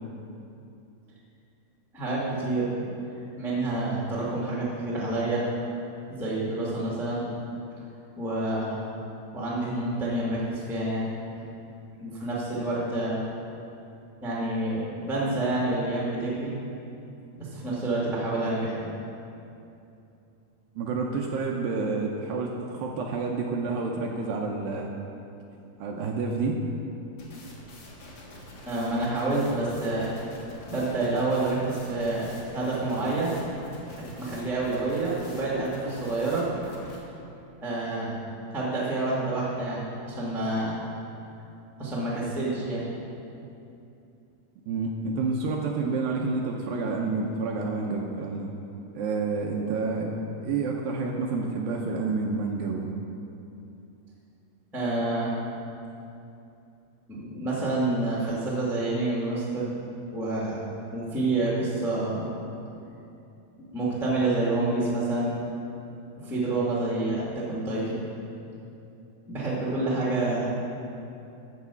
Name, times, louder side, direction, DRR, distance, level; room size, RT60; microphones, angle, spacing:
voice 1, 1.9-2.7 3.4-5.4 6.1-7.3 8.1-8.8 9.3-11.1 11.4-11.5 12.0-13.2 14.2-16.6 17.4-18.9 28.6-30.1 30.7-33.4 34.2-36.5 37.6-38.2 38.5-40.8 41.8-42.9 54.7-55.3 57.1-59.7 60.1-60.6 60.9-62.3 63.6-65.3 66.2-68.0 69.2-70.5, right 2 dB, ahead, -6 dB, 0.7 m, -28 dB
voice 2, 20.8-24.9 25.8-26.6 44.7-48.5 48.9-50.1 50.4-52.9, right 4 dB, 80° right, 0 dB, 2.2 m, -29 dB
sound 1, 27.2-37.0, left 1 dB, 50° left, 2.3 m, -46 dB
13.0 x 4.8 x 7.1 m, 2.7 s
omnidirectional pair, 4.7 m